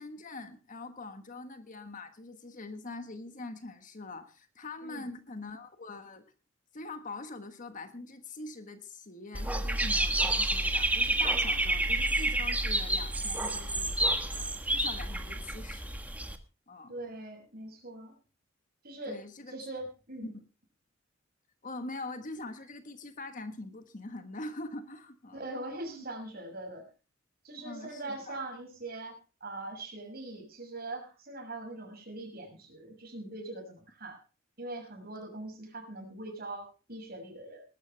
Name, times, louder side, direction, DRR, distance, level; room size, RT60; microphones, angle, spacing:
voice 1, 0.0-6.2 6.7-15.9 16.7-16.9 19.1-19.5 20.2-20.4 21.6-25.4 25.9-26.0 27.6-28.4, left 2 dB, 40° left, 9 dB, 1.4 m, -43 dB
voice 2, 4.8-5.1 16.9-18.1 18.8-19.2 19.5-20.3 25.3-26.9 27.4-34.2 34.6-37.6, right 2 dB, 50° right, 3 dB, 6.4 m, -42 dB
Dog / Bird, 9.3-16.4, right 1 dB, 10° right, 1.3 m, -29 dB
20.0 x 12.0 x 3.4 m, 0.33 s
head